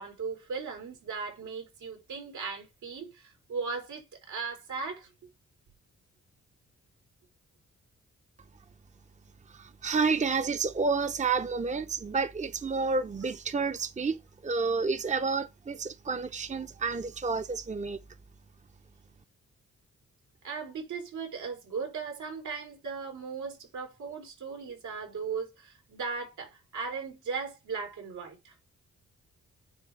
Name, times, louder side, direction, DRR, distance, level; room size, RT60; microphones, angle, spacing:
voice 1, 0.0-5.1 20.4-28.5, right 5 dB, 85° right, 3.7 m, -37 dB
voice 2, 9.5-14.2 14.4-18.0, right 4 dB, 25° right, 0.8 m, -30 dB
9.5 x 3.5 x 4.7 m
cardioid pair, 85°, 29 cm